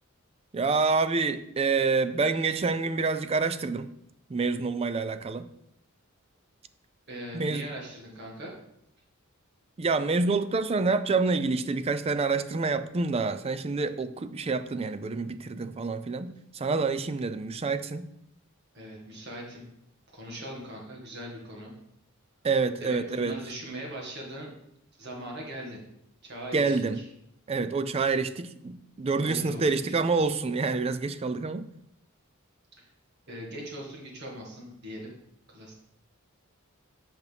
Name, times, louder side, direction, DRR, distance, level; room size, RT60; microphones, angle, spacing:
voice 1, 0.5-3.9 4.3-5.5 7.3-7.6 9.8-18.1 22.4-23.4 26.5-27.0 27.5-31.7, right 4 dB, 30° right, 12 dB, 0.4 m, -27 dB
voice 2, 7.1-8.5 18.7-19.6 20.1-21.7 22.8-24.5 25.0-25.8 26.2-27.0 29.1-30.1 32.8-32.9 33.3-35.1 35.5-35.7, right 1 dB, 55° right, -1 dB, 2.0 m, -40 dB
8.2 x 5.9 x 3.5 m, 0.77 s
head